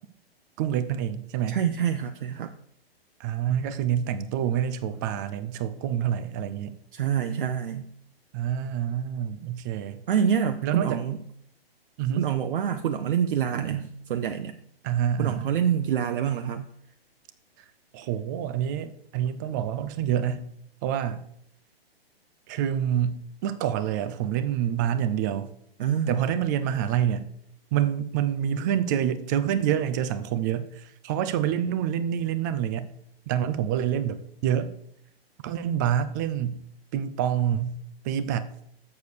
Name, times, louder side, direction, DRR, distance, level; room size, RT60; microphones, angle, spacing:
voice 1, 0.6-1.6 3.2-6.8 8.3-10.0 10.6-11.0 12.0-12.2 14.8-15.5 17.9-20.5 20.8-21.2 22.5-25.5 26.1-27.3 27.7-32.9 33.3-34.7 35.4-36.6 36.9-38.5, right 9 dB, 20° right, 0.4 m, -27 dB
voice 2, 1.5-2.5 6.9-7.9 10.1-11.2 12.2-14.6 15.2-16.7 25.8-26.2, right 8 dB, 60° right, 0.7 m, -26 dB
6.8 x 6.7 x 6.5 m
hypercardioid pair, 130°, 31 cm